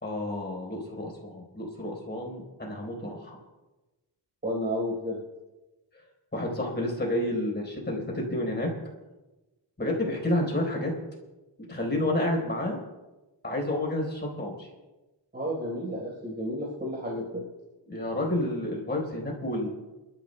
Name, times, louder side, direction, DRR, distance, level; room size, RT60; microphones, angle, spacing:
voice 1, 0.0-3.4 6.3-8.7 9.8-10.9 11.7-12.8 13.4-14.7 17.9-19.7, left 1 dB, 25° left, -1 dB, 4.1 m, -30 dB
voice 2, 4.4-5.2 15.3-17.4, equal, 25° right, -3 dB, 4.2 m, -31 dB
27.5 x 13.5 x 2.2 m, 1.1 s
wide cardioid pair, 160°, 44 cm